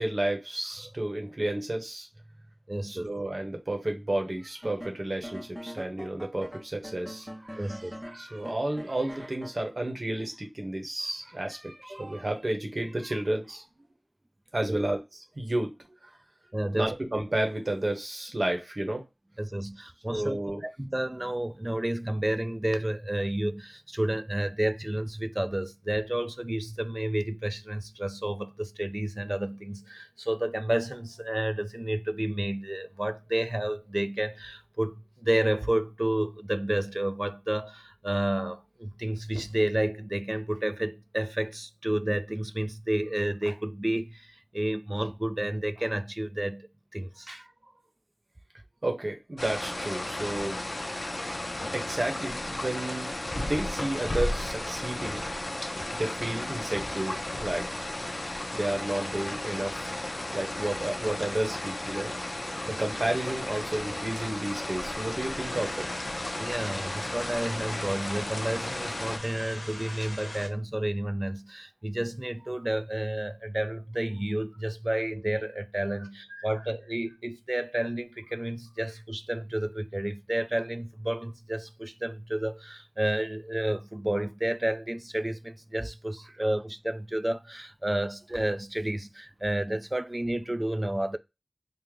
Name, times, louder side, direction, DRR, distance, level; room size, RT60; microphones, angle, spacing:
voice 1, 0.0-2.1 2.9-13.7 14.5-15.0 15.4-15.8 16.7-19.0 20.1-20.6 47.3-47.5 48.8-50.6 51.7-55.5 55.9-57.9 58.5-59.9 60.3-65.9 66.5-66.8 76.3-76.4, right 1 dB, 75° right, 0.9 m, -32 dB
voice 2, 2.7-3.1 7.5-8.0 14.7-14.8 16.5-16.9 19.4-47.4 62.7-62.8 66.4-91.2, right 1 dB, 35° right, 0.3 m, -31 dB
sound 1, 4.6-9.6, equal, 5° left, 0.7 m, -43 dB
sound 2, 49.4-69.2, left 1 dB, 60° left, 0.4 m, -34 dB
sound 3, 65.4-70.5, left 1 dB, 80° left, 0.8 m, -41 dB
3.3 x 2.0 x 3.5 m
wide cardioid pair, 45°, 0 cm